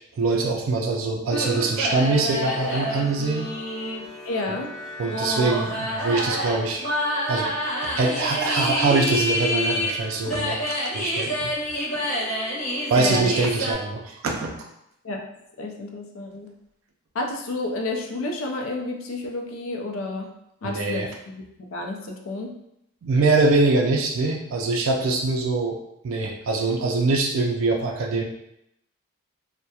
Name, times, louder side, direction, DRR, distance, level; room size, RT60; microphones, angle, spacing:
voice 1, 0.1-3.5 4.5-4.6 5.0-6.9 7.3-7.5 7.8-11.5 12.9-14.6 20.6-21.1 23.0-25.8 26.0-28.2, right 3 dB, 70° right, 0 dB, 0.3 m, -23 dB
sound 1, 1.3-13.7, equal, 35° left, 0.9 m, -28 dB
voice 2, 4.3-4.7 13.0-13.3 15.0-15.2 15.6-16.5 17.1-20.3 20.6-22.6, left 2 dB, 70° left, 1 dB, 0.4 m, -30 dB
2.8 x 2.1 x 2.2 m, 0.80 s
head